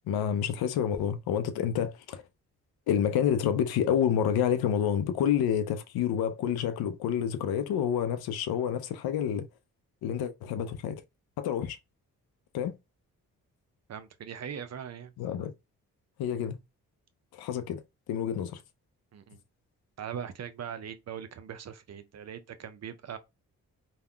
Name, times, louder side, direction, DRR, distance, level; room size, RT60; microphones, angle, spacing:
voice 1, 0.1-2.2 2.9-9.5 10.0-11.0 11.4-11.8 12.5-12.8 15.2-15.5 16.2-16.6 17.3-17.8 18.1-18.6, left 9 dB, 70° left, 0.5 m, -28 dB
voice 2, 13.9-15.1 19.1-19.4 20.0-23.2, right 8 dB, 45° right, 0.5 m, -40 dB
3.5 x 2.2 x 2.2 m
hypercardioid pair, 45°, 38 cm